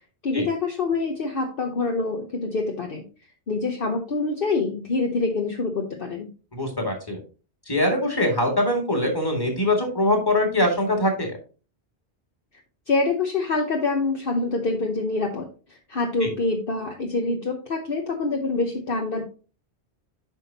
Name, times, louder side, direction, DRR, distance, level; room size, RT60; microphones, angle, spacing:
voice 1, 0.2-3.0 3.5-6.3 12.9-19.2, left 3 dB, 55° left, 2 dB, 1.1 m, -26 dB
voice 2, 6.5-7.2 7.7-11.3 16.2-16.3, left 1 dB, 20° left, 1 dB, 2.2 m, -23 dB
9.5 x 5.5 x 2.8 m, 0.35 s
omnidirectional pair, 1.1 m